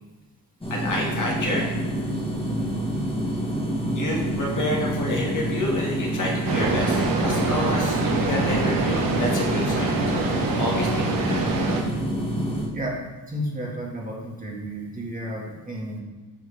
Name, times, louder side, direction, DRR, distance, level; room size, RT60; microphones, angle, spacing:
sound 1, 0.6-12.7, right 1 dB, 15° left, 1.6 m, -27 dB
voice 1, 0.7-1.7 3.9-10.3 10.6-11.4, left 1 dB, 50° left, -3 dB, 2.1 m, -29 dB
voice 2, 2.4-2.7 3.6-3.7 12.7-13.0 13.3-16.0, right 1 dB, 20° right, -3 dB, 1.8 m, -32 dB
sound 2, 6.5-11.8, right 3 dB, 55° right, 1.4 m, -25 dB
10.0 x 6.3 x 3.4 m, 1.2 s
wide cardioid pair, 145°, 40 cm